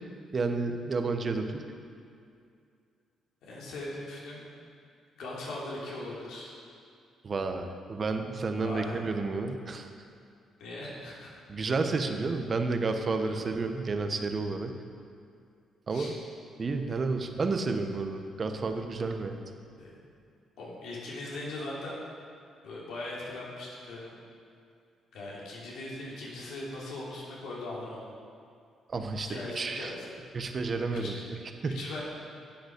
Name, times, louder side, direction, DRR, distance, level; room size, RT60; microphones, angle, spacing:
voice 1, 0.3-1.6 7.2-9.9 11.5-14.7 15.9-16.1 16.6-19.4 28.9-29.9 30.3-31.2 31.6-31.8, right 3 dB, 40° right, 6 dB, 1.0 m, -31 dB
voice 2, 3.4-4.5 5.2-6.6 8.5-9.0 10.6-11.3 13.2-13.4 15.9-16.1 19.8-19.9 20.6-22.0 22.6-24.2 25.1-28.0 29.3-30.2 30.9-31.2 31.6-32.0, left 2 dB, 80° left, -5 dB, 3.0 m, -40 dB
10.5 x 8.0 x 6.6 m, 2.4 s
cardioid pair, 90°, 0 cm